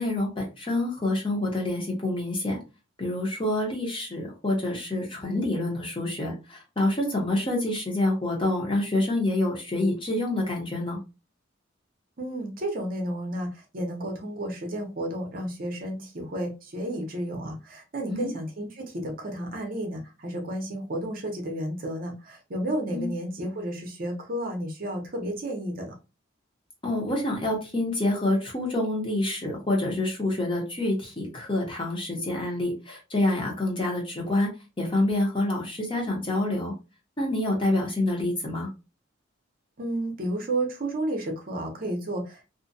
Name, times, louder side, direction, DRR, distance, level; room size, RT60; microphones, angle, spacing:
voice 1, 0.0-2.6 3.0-11.0 18.1-18.3 22.9-23.1 26.8-34.5 34.8-36.7 37.2-38.7, left 1 dB, 25° left, -1 dB, 0.8 m, -27 dB
voice 2, 12.2-25.9 39.8-42.5, right 1 dB, 45° right, 2 dB, 0.6 m, -32 dB
2.5 x 2.1 x 2.6 m, 0.28 s
head